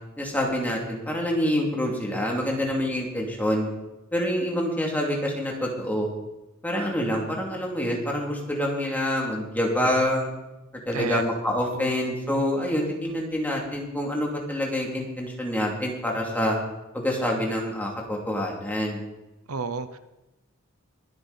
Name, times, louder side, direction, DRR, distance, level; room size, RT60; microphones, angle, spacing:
voice 1, 0.2-3.7 4.1-6.1 6.6-10.3 10.9-16.6 16.9-19.0, left 1 dB, 10° left, -1 dB, 2.6 m, -26 dB
voice 2, 10.9-11.2 11.7-11.9 19.5-20.0, right 4 dB, 90° right, 12 dB, 0.8 m, -31 dB
22.5 x 7.9 x 4.1 m, 0.99 s
head